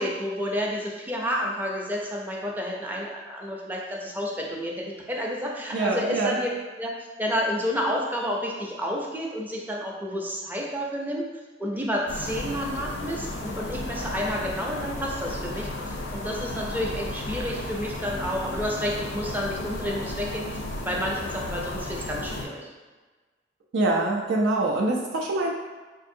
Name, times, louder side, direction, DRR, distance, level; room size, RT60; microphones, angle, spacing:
voice 1, 0.0-6.5 6.8-11.2 11.6-22.6, equal, 10° right, -2 dB, 0.5 m, -30 dB
voice 2, 5.7-6.4 23.7-25.5, right 2 dB, 75° right, -1 dB, 0.4 m, -24 dB
sound 1, 12.1-22.5, left 2 dB, 85° left, 0.5 m, -34 dB
4.5 x 2.5 x 2.6 m, 1.3 s
head